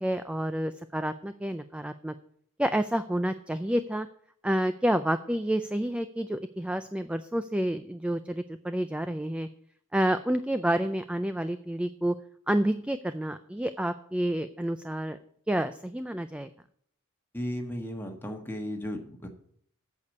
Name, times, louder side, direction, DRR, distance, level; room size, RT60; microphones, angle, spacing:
voice 1, 0.0-2.1 2.6-4.1 4.4-9.5 9.9-12.2 12.5-15.2 15.5-16.5, right 1 dB, 5° right, 11 dB, 0.3 m, -29 dB
voice 2, 17.3-19.3, equal, 10° left, 3 dB, 1.5 m, -35 dB
8.3 x 6.8 x 8.1 m, 0.65 s
head